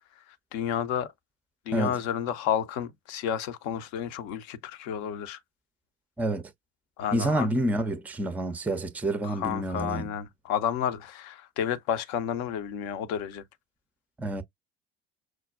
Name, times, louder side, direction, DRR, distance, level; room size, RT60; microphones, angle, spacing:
voice 1, 0.2-1.1 1.7-5.4 7.0-7.5 9.2-13.4, left 9 dB, 55° left, 0.6 m, -31 dB
voice 2, 7.1-10.1 14.2-14.4, right 1 dB, 5° right, 0.5 m, -28 dB
6.0 x 2.2 x 2.3 m
figure-of-eight pair, 60°, 31 cm